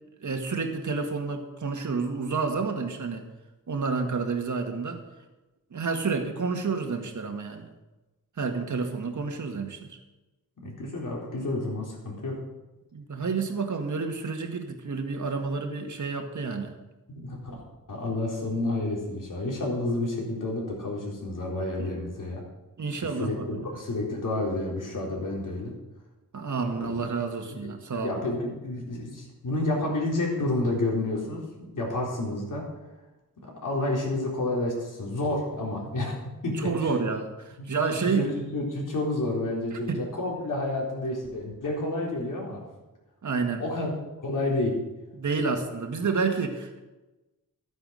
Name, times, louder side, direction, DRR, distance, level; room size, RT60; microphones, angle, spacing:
voice 1, 0.2-3.2 3.7-5.0 5.7-7.7 8.4-10.0 12.9-16.7 21.8-21.9 22.8-23.6 26.3-28.2 36.5-38.3 39.9-40.0 43.2-43.6 45.2-46.8, right 4 dB, 60° right, 4 dB, 1.9 m, -29 dB
voice 2, 10.6-12.4 17.1-17.6 17.9-22.4 23.2-25.7 26.7-27.0 27.5-27.7 28.0-31.4 31.7-32.7 33.4-36.2 36.4-36.9 37.6-42.6 43.6-43.9 44.2-44.8, left 2 dB, 65° left, -2 dB, 4.2 m, -30 dB
13.0 x 9.5 x 6.5 m, 1.1 s
wide cardioid pair, 145°, 34 cm